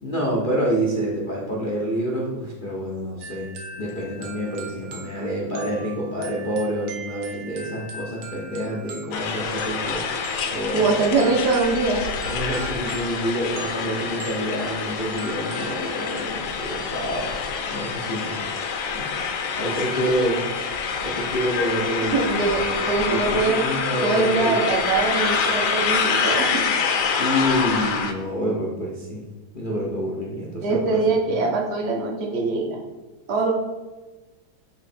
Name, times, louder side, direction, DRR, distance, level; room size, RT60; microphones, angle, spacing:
voice 1, 0.0-3.5 3.8-10.0 10.5-11.3 12.3-18.4 18.9-19.1 19.6-20.4 21.0-24.6 27.2-29.2 29.5-31.0 31.3-31.4, equal, 50° left, -4 dB, 0.6 m, -27 dB
sound 1, 3.2-16.2, right 3 dB, 90° right, 1.7 m, -41 dB
sound 2, 9.1-28.1, left 5 dB, 80° left, 1.5 m, -26 dB
voice 2, 10.7-12.0 22.1-23.6 24.0-26.7 30.6-32.8 33.3-33.5, right 3 dB, 50° right, 0 dB, 0.8 m, -22 dB
7.6 x 3.1 x 4.3 m, 1.1 s
omnidirectional pair, 2.2 m